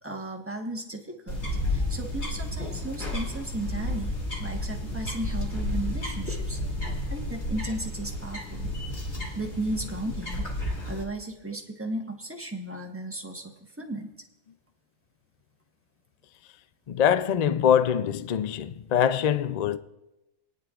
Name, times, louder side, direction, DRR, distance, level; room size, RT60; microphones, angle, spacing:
voice 1, 0.0-4.1 4.4-6.6 7.1-8.7 9.4-10.5 10.9-13.5 13.8-14.1, right 2 dB, 10° right, 1.1 m, -35 dB
sound 1, 1.3-11.0, left 1 dB, 55° left, 2.5 m, -32 dB
voice 2, 16.9-19.8, left 9 dB, 90° left, 0.3 m, -23 dB
29.0 x 9.9 x 2.5 m
omnidirectional pair, 1.4 m